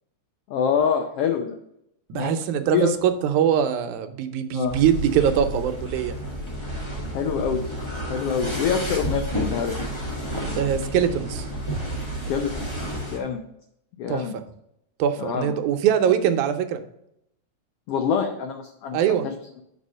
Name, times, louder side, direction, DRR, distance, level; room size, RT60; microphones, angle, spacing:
voice 1, 0.5-1.6 2.1-2.4 2.7-2.9 4.5-4.8 7.1-7.7 8.1-9.8 12.3-13.4 14.0-14.3 15.2-15.5 17.9-19.3, left 7 dB, 80° left, 5 dB, 1.3 m, -26 dB
voice 2, 2.1-6.2 10.6-11.5 14.1-14.4 15.0-16.8 18.9-19.3, right 9 dB, 85° right, 8 dB, 2.1 m, -22 dB
sound 1, 4.6-13.2, equal, 30° left, 0.5 m, -30 dB
5.4 x 4.6 x 6.2 m, 0.78 s
omnidirectional pair, 3.4 m